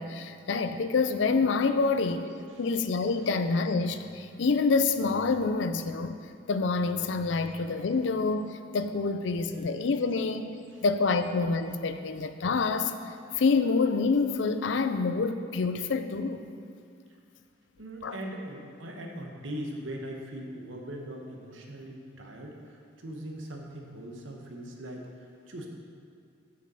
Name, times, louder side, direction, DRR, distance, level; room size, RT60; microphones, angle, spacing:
voice 1, 0.0-2.3 2.6-6.2 6.5-16.4 18.0-18.2, left 4 dB, 70° left, 9 dB, 0.5 m, -27 dB
voice 2, 17.8-25.7, right 1 dB, 90° right, 1 dB, 1.1 m, -40 dB
6.8 x 5.3 x 6.9 m, 2.3 s
head